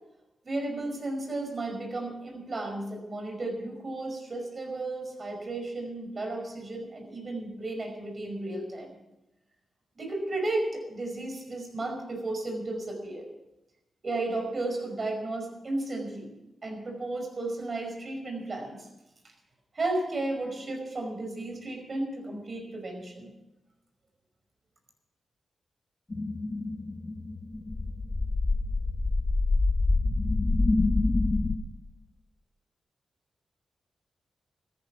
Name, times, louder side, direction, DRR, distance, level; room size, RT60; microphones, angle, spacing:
voice 1, 0.4-8.9 9.9-13.3 14.0-16.3 16.6-18.9 19.7-23.3, right 2 dB, 50° right, 2 dB, 5.3 m, -34 dB
sound 1, 26.1-31.6, left 2 dB, 35° left, 1.2 m, -26 dB
14.0 x 11.0 x 7.2 m, 0.94 s
cardioid pair, 55°, 0 cm